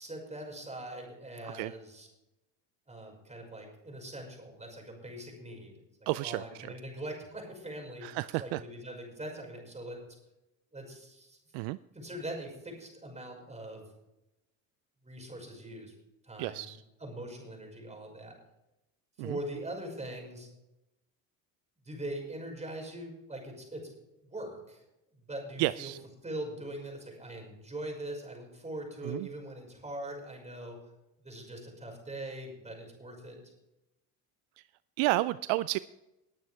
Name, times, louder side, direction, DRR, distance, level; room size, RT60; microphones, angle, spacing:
voice 1, 0.0-2.1 2.9-5.8 6.2-10.2 10.7-11.4 11.9-13.9 15.0-15.9 16.2-16.7 17.0-18.4 19.2-20.5 21.8-23.9 24.2-24.8 25.1-25.9 26.2-30.8 31.2-33.4, right 1 dB, 15° right, 1 dB, 5.6 m, -42 dB
voice 2, 6.1-6.7 8.0-8.6 11.5-11.8 16.4-16.8 19.2-19.4 25.6-26.0 29.0-29.3 35.0-35.8, right 19 dB, 65° right, 16 dB, 0.5 m, -31 dB
20.0 x 9.1 x 3.5 m, 0.92 s
supercardioid pair, 95°, 45 cm